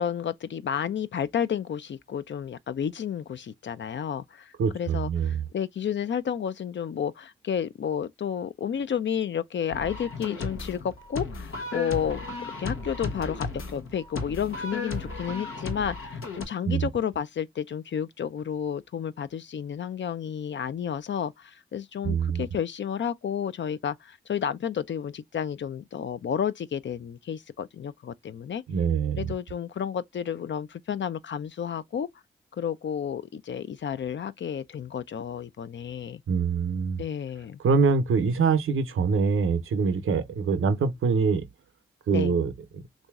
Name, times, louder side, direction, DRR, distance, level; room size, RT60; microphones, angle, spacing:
voice 1, 0.0-12.2 12.6-28.6 29.2-32.1 32.6-36.2 37.0-37.6 42.1-42.4, left 8 dB, 60° left, 0.5 m, -31 dB
voice 2, 4.6-5.4 16.6-16.9 22.0-22.5 28.7-29.3 36.3-37.0 37.6-41.4 42.1-42.8, right 5 dB, 85° right, 0.7 m, -24 dB
sound 1, 9.7-16.4, left 3 dB, 85° left, 0.9 m, -35 dB
3.0 x 2.6 x 3.5 m
cardioid pair, 45°, 21 cm